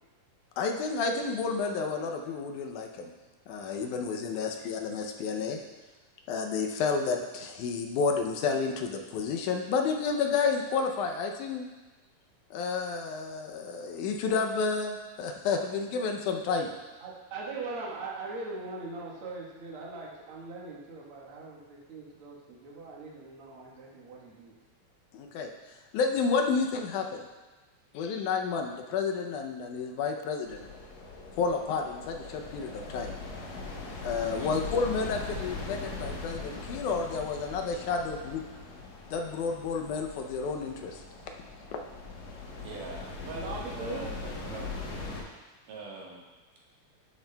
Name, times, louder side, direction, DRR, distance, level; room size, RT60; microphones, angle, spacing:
voice 1, 0.6-3.1 3.5-5.6 6.3-11.7 12.5-16.7 25.1-25.5 25.9-27.3 27.9-30.7 31.4-33.1 34.0-38.4 39.1-41.0, left 5 dB, 80° left, 3 dB, 2.0 m, -30 dB
voice 2, 4.3-4.6 17.0-24.5 42.5-42.6 43.3-44.0, right 3 dB, 55° right, -4 dB, 1.8 m, -41 dB
sound 1, 30.4-45.2, left 3 dB, 60° left, 2.0 m, -41 dB
voice 3, 42.6-45.0 45.7-46.3, right 3 dB, 80° right, -3 dB, 2.9 m, -42 dB
11.5 x 7.1 x 2.2 m, 1.2 s
omnidirectional pair, 3.7 m